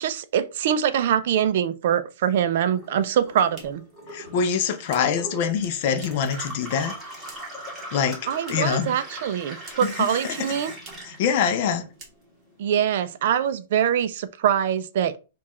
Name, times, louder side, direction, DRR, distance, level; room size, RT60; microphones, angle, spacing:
voice 1, 0.0-3.8 8.3-10.7 12.6-15.2, right 9 dB, 45° right, 0.4 m, -23 dB
Gurgling / Water tap faucet / Sink (filling or washing), 2.7-12.2 12.5-13.4, right 1 dB, 5° right, 1.3 m, -40 dB
sound 1, 3.5-6.4 6.7-7.7 7.9-8.9 9.1-10.1 10.3-10.4 10.7-11.2 11.5-11.7 11.9-12.6, right 3 dB, 20° right, 1.0 m, -49 dB
voice 2, 4.1-7.0 7.9-9.0 9.8-10.6 11.0-11.9, left 7 dB, 35° left, 0.5 m, -25 dB
4.7 x 2.3 x 4.2 m
supercardioid pair, 175°, 0 cm